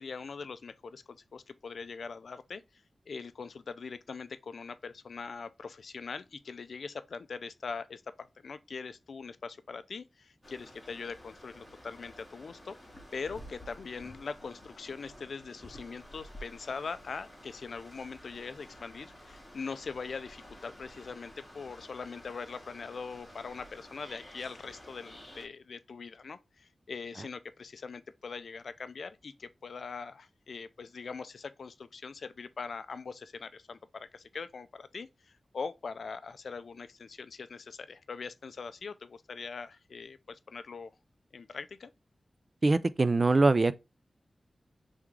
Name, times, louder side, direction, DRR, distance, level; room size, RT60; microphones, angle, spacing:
voice 1, 0.0-2.6 3.1-12.8 13.1-40.9 41.3-41.9, left 5 dB, 80° left, 0.3 m, -42 dB
sound 1, 10.4-25.5, equal, 15° left, 1.7 m, -51 dB
voice 2, 42.6-43.7, right 3 dB, 40° right, 0.3 m, -23 dB
3.6 x 3.4 x 3.1 m
wide cardioid pair, 80°, 0 cm